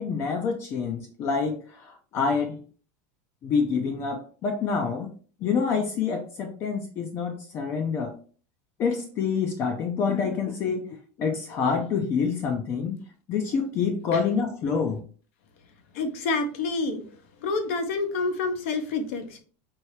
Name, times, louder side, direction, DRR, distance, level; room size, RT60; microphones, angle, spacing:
voice 1, 0.0-2.6 3.4-5.1 5.4-8.2 8.8-13.0 13.3-15.0, left 5 dB, 35° left, 4 dB, 0.5 m, -27 dB
voice 2, 15.9-17.0 17.4-19.4, left 3 dB, 70° left, 7 dB, 0.9 m, -28 dB
4.5 x 2.7 x 3.2 m, 0.40 s
supercardioid pair, 165°, 7 cm